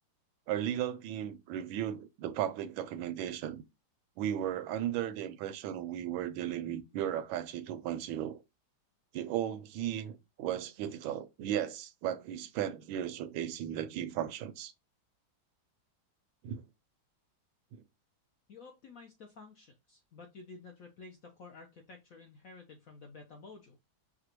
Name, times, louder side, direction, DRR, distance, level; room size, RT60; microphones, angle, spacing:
voice 1, 0.5-3.6 4.2-8.4 9.1-14.7 16.4-16.6 17.7-17.8, right 11 dB, 85° right, 1.3 m, -35 dB
voice 2, 18.5-23.8, left 4 dB, 70° left, 0.8 m, -52 dB
4.8 x 2.2 x 2.9 m
omnidirectional pair, 2.1 m